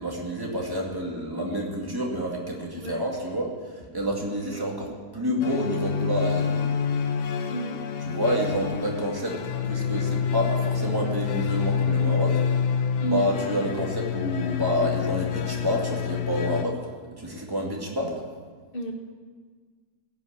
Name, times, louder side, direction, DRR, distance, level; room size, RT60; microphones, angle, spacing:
voice 1, 0.0-6.7 8.0-12.4 12.7-16.8 17.2-18.2, equal, 15° right, -2 dB, 2.2 m, -29 dB
sound 1, 5.4-16.6, left 7 dB, 90° left, 1.4 m, -27 dB
voice 2, 7.5-7.8 13.0-13.3 18.7-18.9, right 2 dB, 35° left, 2 dB, 1.7 m, -31 dB
16.5 x 6.3 x 8.7 m, 1.5 s
omnidirectional pair, 1.8 m